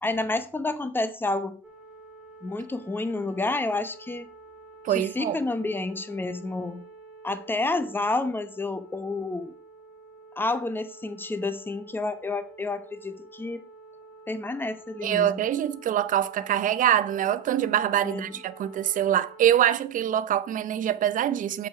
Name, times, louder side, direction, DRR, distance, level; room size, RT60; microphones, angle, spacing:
voice 1, 0.0-1.6 2.4-4.3 4.9-6.8 7.2-9.5 10.4-13.6 14.3-15.3 18.0-18.2, left 2 dB, 10° left, 0.9 m, -29 dB
sound 1, 1.6-19.5, right 3 dB, 5° right, 1.8 m, -49 dB
voice 2, 4.8-5.4 15.0-21.7, right 11 dB, 50° right, 0.7 m, -24 dB
7.4 x 5.0 x 5.9 m
cardioid pair, 110°, 17 cm